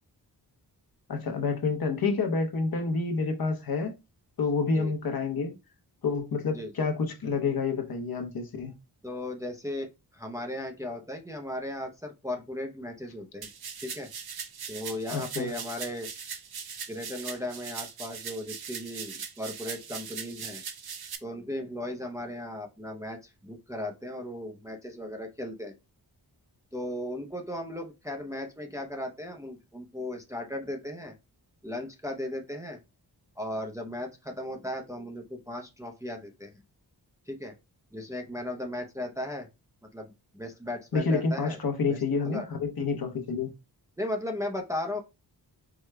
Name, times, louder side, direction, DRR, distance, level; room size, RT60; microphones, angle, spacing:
voice 1, 1.1-3.9 4.4-5.5 6.0-8.7 15.1-15.5 40.9-43.5, left 4 dB, 60° left, 0.9 m, -28 dB
voice 2, 9.0-9.9 10.1-13.5 13.8-14.1 14.7-16.1 16.9-20.6 21.2-25.7 26.7-31.1 31.6-32.8 33.4-36.5 37.3-37.5 37.9-39.5 39.9-41.6 41.9-42.5 44.0-45.0, left 1 dB, 10° right, 0.5 m, -36 dB
sound 1, 13.4-21.2, right 7 dB, 60° right, 0.7 m, -40 dB
4.8 x 2.2 x 3.2 m
wide cardioid pair, 135°, 41 cm